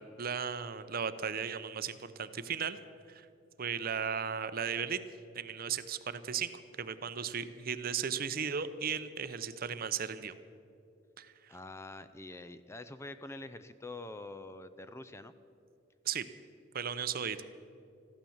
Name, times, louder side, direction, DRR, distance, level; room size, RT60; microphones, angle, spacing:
voice 1, 0.0-2.8 3.1-3.3 3.6-5.0 5.3-6.5 6.8-10.3 11.2-11.3 16.0-16.2 16.7-17.4, right 7 dB, 50° right, 12 dB, 0.7 m, -36 dB
voice 2, 11.5-15.3, left 2 dB, 15° left, 12 dB, 0.5 m, -46 dB
14.5 x 12.0 x 7.2 m, 2.6 s
head